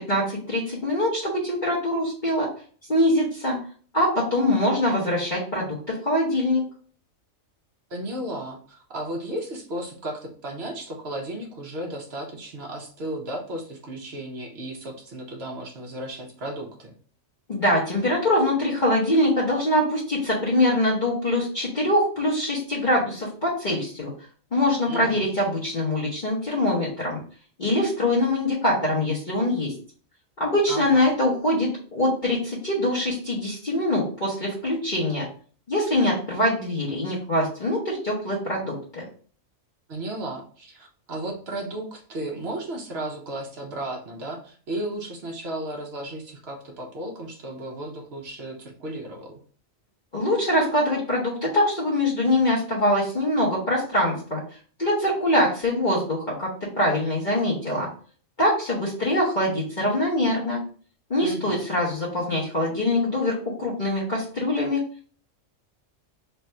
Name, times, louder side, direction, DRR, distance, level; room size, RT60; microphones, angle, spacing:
voice 1, 0.0-2.5 2.9-3.6 3.9-6.6 17.5-24.1 24.5-27.2 27.6-29.7 30.4-35.3 35.7-39.0 50.1-54.4 54.8-57.9 58.4-60.6 61.1-64.8, left 1 dB, 40° left, -6 dB, 1.0 m, -23 dB
voice 2, 7.9-16.9 24.9-25.2 30.7-31.0 39.9-49.4 61.2-61.6, right 1 dB, 55° right, 1 dB, 1.0 m, -34 dB
3.3 x 2.5 x 4.2 m, 0.43 s
omnidirectional pair, 1.4 m